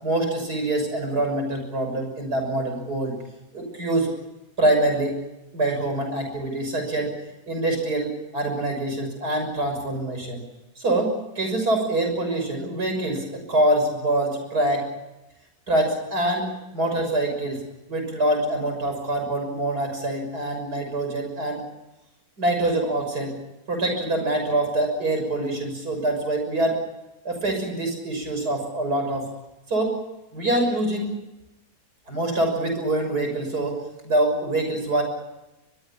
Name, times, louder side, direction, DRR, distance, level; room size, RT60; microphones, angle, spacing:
voice 1, 0.0-3.2 3.5-4.1 4.6-5.2 5.5-7.2 7.5-10.4 10.8-14.9 15.7-17.6 17.9-21.6 22.4-23.4 23.7-26.8 27.3-29.3 29.7-30.0 30.3-31.1 32.1-33.8 34.0-35.0, right 1 dB, 85° right, 4 dB, 7.0 m, -25 dB
23.5 x 22.5 x 7.3 m, 0.97 s
omnidirectional pair, 1.6 m